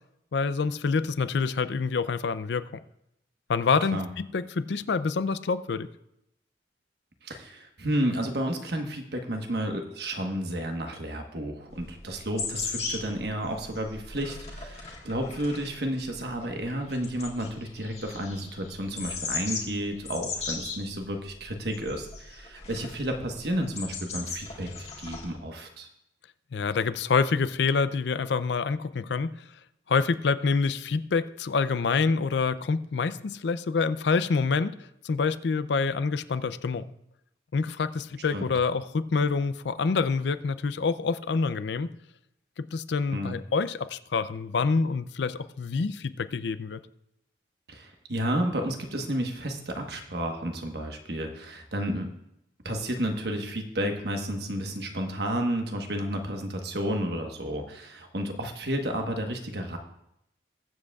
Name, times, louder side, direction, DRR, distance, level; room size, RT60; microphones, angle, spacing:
voice 1, 0.3-2.7 3.5-5.9 26.5-29.3 29.9-34.8 35.0-36.9 37.5-41.9 42.6-46.8, left 4 dB, 70° left, 14 dB, 0.4 m, -27 dB
voice 2, 7.2-25.9 38.3-38.5 43.1-43.4 47.7-52.1 52.6-59.8, right 1 dB, 60° right, 4 dB, 1.3 m, -31 dB
sound 1, 11.7-25.3, left 4 dB, 35° left, 1.6 m, -38 dB
21.5 x 7.6 x 2.4 m, 0.81 s
head